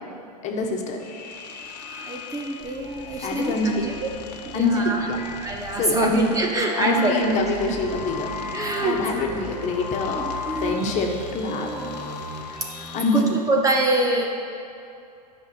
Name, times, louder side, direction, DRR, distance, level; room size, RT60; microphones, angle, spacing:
voice 1, 0.4-1.0 3.2-3.9 4.5-5.2 5.8-6.4 6.8-8.3 8.8-10.2 10.6-11.7 12.9-13.4, left 2 dB, 35° left, 1 dB, 1.3 m, -25 dB
sound 1, 1.0-13.2, left 5 dB, 75° left, 1.1 m, -37 dB
voice 2, 1.9-4.1 4.4-5.1 5.4-7.1 7.7-7.8 8.5-9.3 10.1-10.8 11.5-12.0 12.6-12.7 13.1-14.3, right 2 dB, 15° right, 1 dB, 0.9 m, -25 dB
sound 2, 2.6-13.4, right 2 dB, 35° right, 1.3 m, -41 dB
10.5 x 5.7 x 7.8 m, 2.6 s
hypercardioid pair, 125°, 21 cm